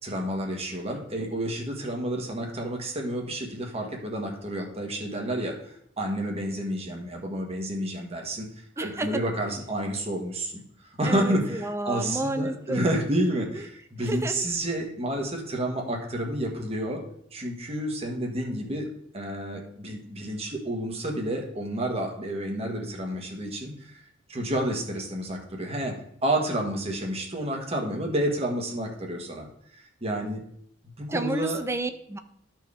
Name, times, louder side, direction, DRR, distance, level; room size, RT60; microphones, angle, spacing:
voice 1, 0.0-10.6 11.0-17.0 17.3-18.9 19.1-24.0 24.3-29.5 29.7-30.4 31.0-31.6, right 1 dB, 35° right, 1 dB, 1.5 m, -30 dB
voice 2, 8.8-9.2 11.0-12.9 14.0-14.4 31.1-32.2, right 2 dB, 15° right, 9 dB, 0.5 m, -31 dB
13.0 x 4.6 x 3.6 m, 0.68 s
head